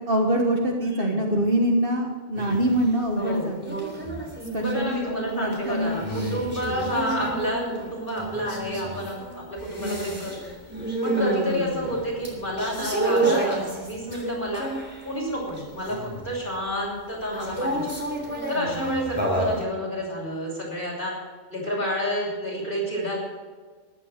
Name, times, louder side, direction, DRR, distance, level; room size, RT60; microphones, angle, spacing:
voice 1, 0.1-3.8 4.5-6.3 18.5-18.8, right 1 dB, 45° right, 1 dB, 1.6 m, -25 dB
voice 2, 0.8-1.2 3.2-3.5 4.5-10.5 11.0-14.7 15.0-17.9 18.5-21.1 21.5-23.2, equal, 40° left, -4 dB, 6.5 m, -30 dB
sound 1, 2.4-2.8 3.2-15.1 15.5-16.4 17.3-19.6, right 2 dB, 10° right, 3.4 m, -30 dB
14.0 x 11.5 x 6.6 m, 1.5 s
omnidirectional pair, 1.3 m